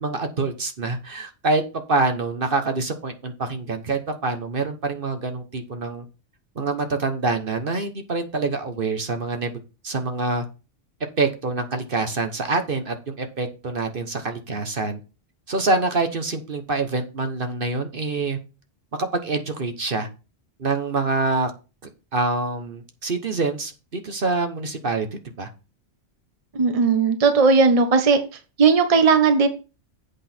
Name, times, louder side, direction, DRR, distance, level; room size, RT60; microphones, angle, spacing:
voice 1, 0.0-1.6 1.9-6.1 6.5-9.5 9.8-10.4 11.2-15.0 15.5-18.4 19.0-20.1 20.6-21.5 22.1-25.5, right 3 dB, 50° right, 6 dB, 1.2 m, -25 dB
voice 2, 26.5-28.2 28.6-29.5, right 4 dB, 30° right, 7 dB, 1.0 m, -17 dB
8.2 x 6.1 x 4.4 m, 0.31 s
omnidirectional pair, 1.3 m